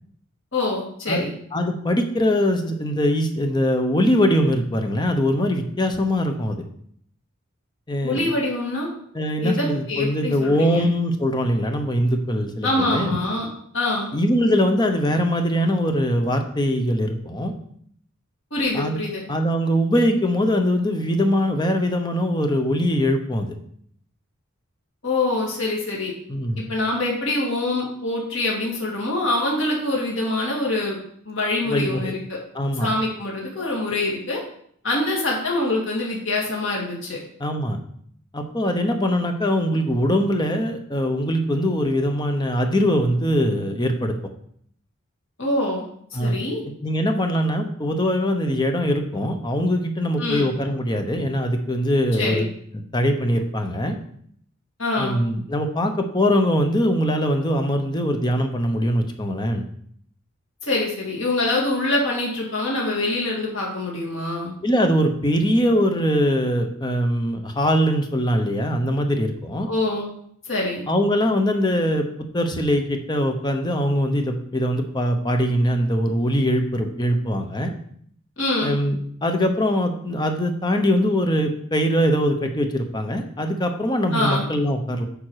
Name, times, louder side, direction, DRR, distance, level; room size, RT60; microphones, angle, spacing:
voice 1, 0.5-1.3 8.0-8.9 9.4-10.9 12.6-13.5 13.7-14.1 18.5-19.2 25.0-26.1 26.7-31.0 31.3-32.4 32.8-34.4 34.8-37.2 45.4-45.9 46.2-46.6 50.2-50.5 52.2-52.4 54.8-55.2 60.7-64.5 69.7-70.1 70.5-70.8 78.4-78.8 84.1-84.5, left 2 dB, 60° left, -3 dB, 2.3 m, -24 dB
voice 2, 1.5-6.6 7.9-8.3 9.1-13.2 14.1-17.5 18.7-19.0 19.3-23.5 26.3-26.6 31.7-32.1 32.5-32.9 37.4-37.8 38.3-44.1 46.1-46.4 46.8-52.5 52.7-54.0 55.0-59.7 64.6-69.7 70.9-72.1 72.3-77.7 78.6-85.1, equal, 20° left, 5 dB, 0.9 m, -22 dB
8.8 x 5.2 x 4.9 m, 0.65 s
head